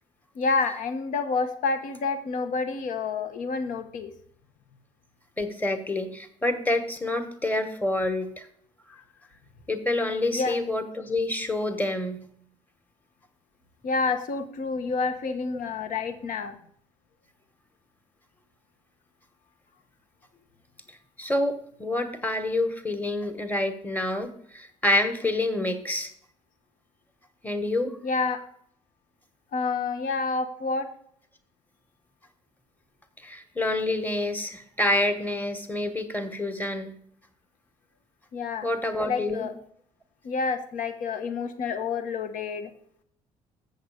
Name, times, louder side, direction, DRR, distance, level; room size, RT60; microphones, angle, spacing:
voice 1, 0.3-4.1 10.3-10.5 13.8-16.6 28.0-28.4 29.5-30.9 38.3-38.7 39.1-39.5 40.2-42.7, left 4 dB, 55° left, 10 dB, 1.0 m, -28 dB
voice 2, 5.4-8.5 9.7-12.3 15.3-15.4 21.2-26.1 27.4-28.0 33.2-36.9 38.6-39.5, left 1 dB, 10° left, 7 dB, 1.4 m, -27 dB
7.9 x 6.7 x 4.9 m, 0.65 s
hypercardioid pair, 50°, 16 cm